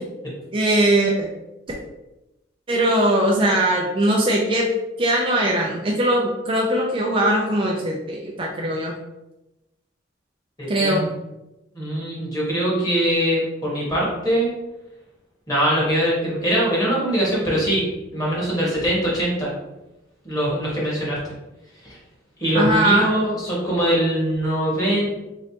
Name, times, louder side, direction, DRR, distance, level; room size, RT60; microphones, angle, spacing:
voice 1, 0.5-1.3 1.7-1.8 2.7-4.7 5.0-9.0 10.7-11.1 22.5-23.1, right 1 dB, 30° right, -1 dB, 0.4 m, -20 dB
voice 2, 10.6-11.1 11.7-14.5 15.5-17.8 18.1-19.5 20.2-21.3 21.8-22.0 22.4-25.1, equal, 20° left, -6 dB, 1.4 m, -22 dB
3.8 x 3.2 x 2.8 m, 0.98 s
head